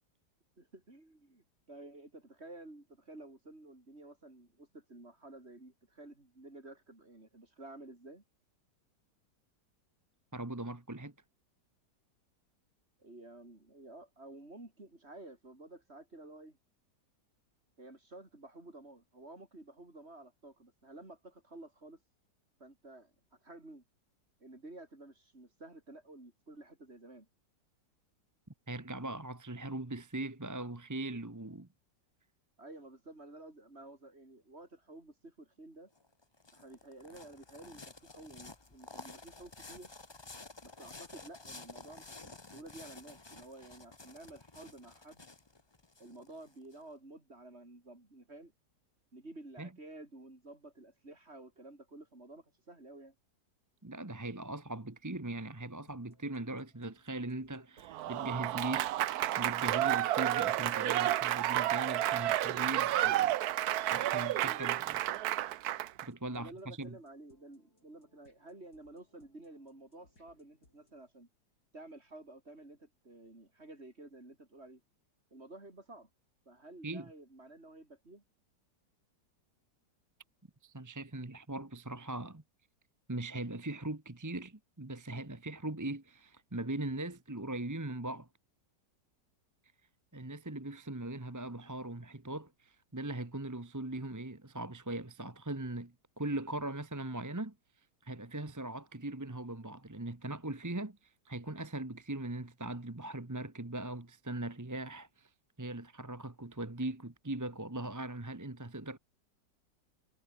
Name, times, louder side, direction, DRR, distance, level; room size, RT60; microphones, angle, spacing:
voice 1, 0.6-8.2 13.0-16.6 17.8-22.0 22.6-23.1 23.4-23.8 24.4-27.3 32.6-35.9 36.5-39.9 40.6-45.3 46.0-48.5 49.1-53.2 64.3-64.8 66.3-71.3 71.7-74.8 75.3-76.1 76.5-78.2, right 2 dB, 35° right, 5.2 m, -52 dB
voice 2, 10.3-11.1 28.7-31.7 49.6-49.7 53.8-63.4 63.8-65.5 66.0-67.0 76.8-77.1 80.6-82.4 83.1-88.3 90.1-97.5 98.0-105.3 105.6-109.0, right 2 dB, 10° right, 1.1 m, -40 dB
sound 1, 36.0-46.8, left 3 dB, 20° left, 0.9 m, -52 dB
sound 2, 55.9-71.1, left 2 dB, 60° left, 8.4 m, -70 dB
Applause / Crowd, 57.9-66.1, right 13 dB, 65° right, 1.1 m, -31 dB
omnidirectional pair, 1.9 m